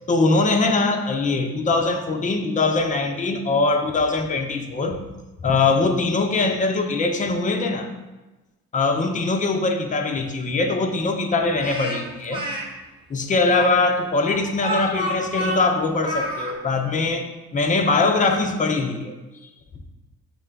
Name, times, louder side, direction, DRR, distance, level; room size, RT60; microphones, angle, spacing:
voice 1, 0.1-5.0 5.4-7.9 8.7-12.4 13.1-19.1, left 3 dB, 20° left, 5 dB, 0.4 m, -22 dB
Speech, 11.6-12.6 13.5-16.5, equal, 10° right, 1.1 m, -29 dB
6.3 x 2.2 x 3.5 m, 1.1 s
figure-of-eight pair, 50°, 47 cm